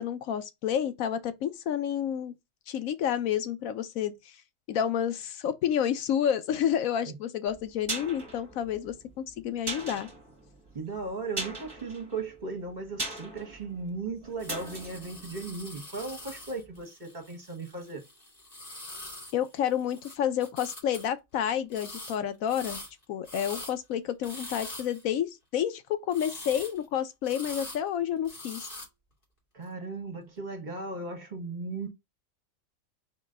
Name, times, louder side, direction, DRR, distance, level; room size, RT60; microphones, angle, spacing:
voice 1, 0.0-2.3 2.7-4.3 4.7-10.1 19.3-22.8 23.1-28.7, left 9 dB, 90° left, 1.1 m, -30 dB
sound 1, 7.5-16.3 16.6-16.7, right 2 dB, 15° right, 1.7 m, -40 dB
voice 2, 10.7-18.0 29.5-31.9, right 3 dB, 35° right, 1.5 m, -37 dB
sound 2, 14.4-20.2 20.4-21.1 21.7-22.2 22.5-23.7 24.2-25.0 26.1-26.8 27.2-27.9 28.2-28.9, left 1 dB, 40° left, 2.3 m, -43 dB
4.4 x 3.1 x 3.8 m
omnidirectional pair, 1.4 m